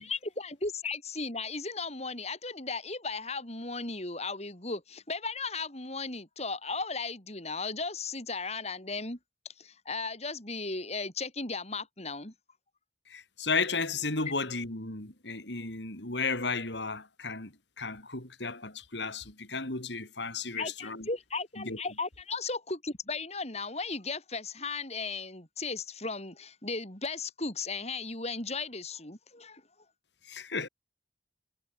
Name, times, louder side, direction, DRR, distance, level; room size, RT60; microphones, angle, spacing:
voice 1, 0.0-9.2 9.6-12.3 20.6-29.6, left 4 dB, 35° left, 5.3 m, -36 dB
voice 2, 13.1-17.5 17.8-21.1 21.6-21.8 30.3-30.7, left 4 dB, 70° left, 4.1 m, -34 dB
head